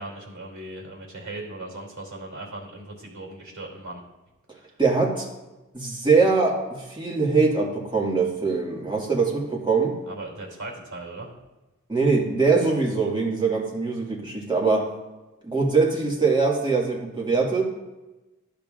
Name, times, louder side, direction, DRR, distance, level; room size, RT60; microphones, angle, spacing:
voice 1, 0.0-4.0 4.5-4.7 10.1-11.3, right 2 dB, 65° right, -2 dB, 2.9 m, -38 dB
voice 2, 4.5-5.3 5.7-10.0 11.9-14.9 15.4-17.6, right 4 dB, 15° right, -3 dB, 1.9 m, -22 dB
11.5 x 6.9 x 2.5 m, 1.1 s
cardioid pair, 45°, 32 cm